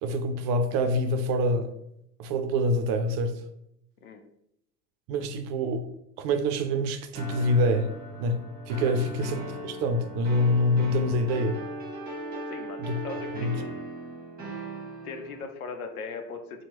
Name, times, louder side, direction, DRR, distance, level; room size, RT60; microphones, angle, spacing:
voice 1, 0.0-1.7 2.2-3.4 5.1-5.9 6.2-7.9 8.2-8.4 8.7-11.6 12.8-13.0 13.4-13.5, equal, 50° right, 7 dB, 0.5 m, -26 dB
sound 1, 7.1-15.4, right 1 dB, 20° right, 1.1 m, -38 dB
voice 2, 12.5-13.7 15.0-16.6, left 4 dB, 85° left, 5 dB, 0.7 m, -39 dB
4.3 x 2.2 x 2.9 m, 0.77 s
hypercardioid pair, 85°, 43 cm